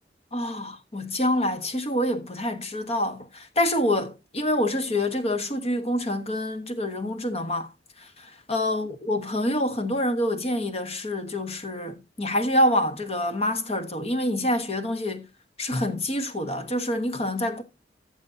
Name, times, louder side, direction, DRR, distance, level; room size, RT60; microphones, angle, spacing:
voice 1, 0.3-7.7 8.5-15.3 15.6-17.6, left 1 dB, 35° left, 1.2 m, -26 dB
14.5 x 6.7 x 2.7 m
head